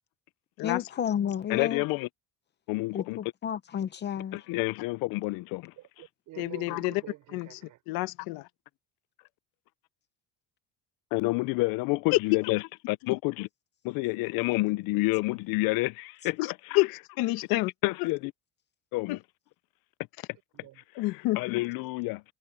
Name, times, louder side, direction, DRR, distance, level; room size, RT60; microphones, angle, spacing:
voice 1, 0.6-1.8 2.9-4.4, left 9 dB, 30° left, 0.7 m, -31 dB
voice 2, 1.5-2.1 2.7-3.2 4.3-5.7 6.7-6.8 11.1-13.5 13.8-16.5 17.8-18.3 18.9-19.2 21.4-22.2, left 23 dB, 70° left, 0.5 m, -29 dB
voice 3, 5.8-7.8 20.5-20.8, right 16 dB, 55° right, 6.3 m, -48 dB
voice 4, 6.4-7.0 7.3-7.6 7.9-8.5 12.1-12.2 13.1-13.2 16.4-17.7 19.1-19.2 20.9-21.6, left 20 dB, 85° left, 1.1 m, -28 dB
cardioid pair, 170°, 35 cm